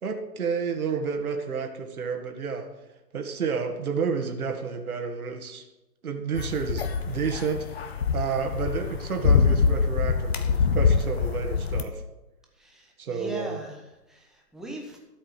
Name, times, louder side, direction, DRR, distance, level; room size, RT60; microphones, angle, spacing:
voice 1, 0.0-2.8 3.1-5.7 6.0-12.0 13.0-13.6, right 5 dB, 60° right, 4 dB, 1.9 m, -30 dB
sound 1, 6.3-11.8, left 5 dB, 40° left, 1.1 m, -24 dB
voice 2, 12.6-15.0, right 2 dB, ahead, -1 dB, 1.1 m, -40 dB
13.0 x 5.5 x 8.9 m, 1.0 s
figure-of-eight pair, 140°, 49 cm